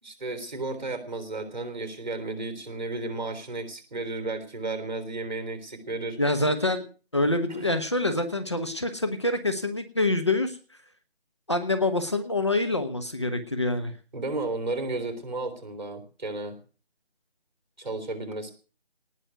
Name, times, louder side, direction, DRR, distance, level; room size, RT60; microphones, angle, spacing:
voice 1, 0.0-6.2 7.5-7.7 14.1-16.6 17.8-18.5, right 2 dB, 45° right, 9 dB, 3.6 m, -33 dB
voice 2, 6.2-6.8 7.1-10.6 11.5-13.9, left 2 dB, 25° left, 8 dB, 1.1 m, -26 dB
18.5 x 6.3 x 9.2 m, 0.38 s
figure-of-eight pair, 165°, 32 cm